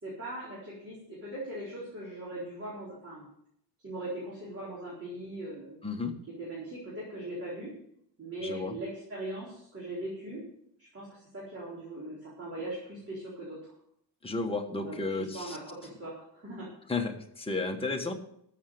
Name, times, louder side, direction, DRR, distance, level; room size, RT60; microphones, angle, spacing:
voice 1, 0.0-3.3 3.8-5.8 6.4-7.7 8.2-10.4 10.8-13.7 14.7-16.7, right 1 dB, 30° right, -7 dB, 4.2 m, -40 dB
voice 2, 5.8-6.2 8.4-8.8 14.2-15.6 16.9-18.1, left 3 dB, 15° left, 2 dB, 1.3 m, -33 dB
14.0 x 7.4 x 6.8 m, 0.71 s
wide cardioid pair, 170°, 44 cm